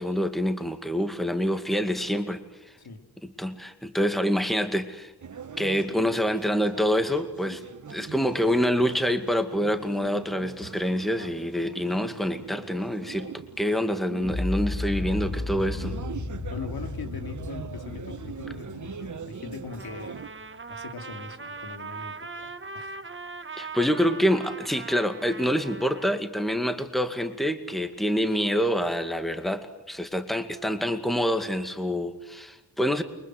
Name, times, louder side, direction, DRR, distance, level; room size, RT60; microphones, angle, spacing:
voice 1, 0.0-2.4 3.2-5.1 5.6-7.6 7.9-13.3 13.6-16.0 23.6-33.0, equal, ahead, 8 dB, 2.2 m, -26 dB
sound 1, 5.2-20.3, right 6 dB, 50° right, 1.4 m, -42 dB
sound 2, 14.2-20.3, left 2 dB, 45° left, 2.6 m, -34 dB
voice 2, 16.5-20.2 20.7-23.0 30.7-30.8, left 4 dB, 70° left, 6 dB, 3.2 m, -41 dB
Trumpet, 19.7-26.2, right 4 dB, 30° right, 1.3 m, -40 dB
29.0 x 24.0 x 7.9 m, 0.98 s
wide cardioid pair, 115°, 38 cm